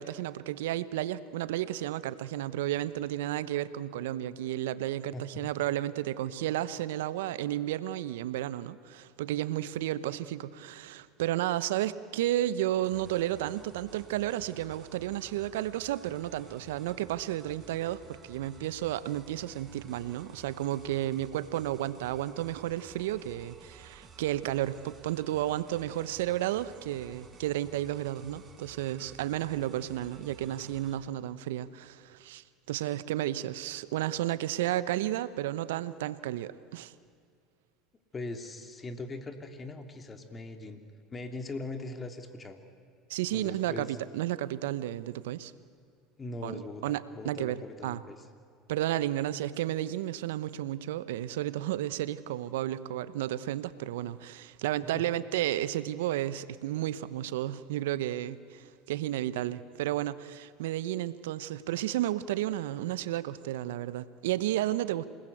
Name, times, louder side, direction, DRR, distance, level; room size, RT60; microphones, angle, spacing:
voice 1, 0.0-36.9 43.1-45.5 46.4-47.6 47.8-48.0 48.7-65.0, right 13 dB, 75° right, 16 dB, 0.9 m, -32 dB
voice 2, 5.1-5.5 38.1-40.8 41.1-42.6 43.3-44.0 46.2-48.2 54.8-55.0, left 2 dB, 25° left, 6 dB, 3.1 m, -40 dB
sound 1, 12.8-31.0, right 4 dB, 30° right, 4.9 m, -54 dB
28.0 x 20.5 x 8.1 m, 2.3 s
hypercardioid pair, 80°, 0 cm